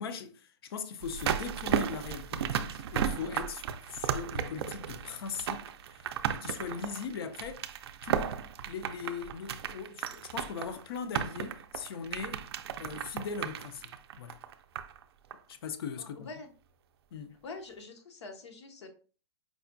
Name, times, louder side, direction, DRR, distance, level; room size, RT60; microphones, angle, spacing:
voice 1, 0.0-7.7 8.0-8.4 8.7-12.4 12.8-13.9 14.2-14.4 15.5-16.3 17.1-17.4, left 6 dB, 60° left, 0.5 m, -40 dB
sound 1, 1.0-15.0 15.3-15.4, right 8 dB, 65° right, 0.4 m, -35 dB
voice 2, 16.0-16.5 17.4-18.9, left 3 dB, 75° left, 0.9 m, -45 dB
4.8 x 2.2 x 2.5 m
hypercardioid pair, 160°, 14 cm